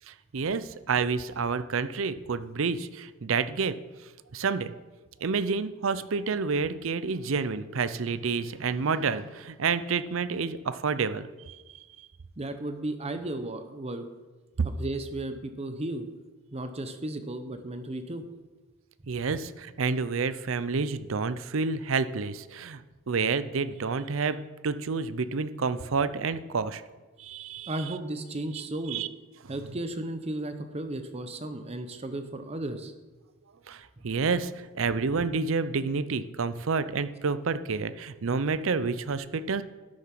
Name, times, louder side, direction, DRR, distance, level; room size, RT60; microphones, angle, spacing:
voice 1, 0.1-3.8 4.3-4.7 5.2-11.6 12.0-12.1 14.6-14.7 19.1-26.8 27.2-27.7 28.9-29.1 33.7-39.6, right 4 dB, 70° right, 14 dB, 0.6 m, -29 dB
voice 2, 12.4-14.1 14.8-16.0 16.5-18.2 27.7-29.0 29.5-32.9 34.0-34.1, right 1 dB, 30° right, 8 dB, 0.8 m, -34 dB
11.5 x 6.9 x 6.0 m, 1.3 s
head